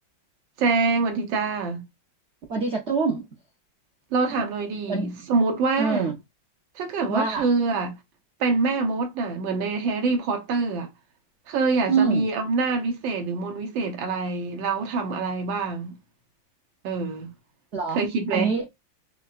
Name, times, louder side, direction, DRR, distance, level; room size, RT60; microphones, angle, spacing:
voice 1, 0.6-1.8 4.1-6.1 6.7-8.0 8.4-10.9 11.5-16.0 16.8-17.3 17.9-18.5, right 4 dB, 90° right, 1.6 m, -25 dB
voice 2, 2.5-3.3 4.3-4.4 4.9-5.3 5.8-6.1 7.1-7.5 11.9-12.3 17.7-18.0 18.3-18.7, right 4 dB, 65° right, 0.7 m, -25 dB
5.5 x 2.2 x 2.4 m
omnidirectional pair, 2.0 m